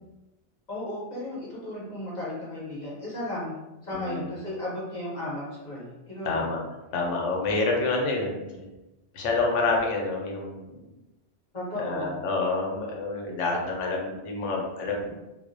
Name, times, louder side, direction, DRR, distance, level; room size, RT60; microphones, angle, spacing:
voice 1, 0.7-3.6 3.8-6.5 11.5-12.2 15.0-15.1, left 1 dB, 40° left, -7 dB, 0.8 m, -34 dB
voice 2, 3.9-4.3 6.2-6.6 6.9-8.7 9.1-10.7 11.8-15.1, left 3 dB, 80° left, -1 dB, 0.9 m, -28 dB
2.4 x 2.0 x 2.5 m, 1.0 s
omnidirectional pair, 1.2 m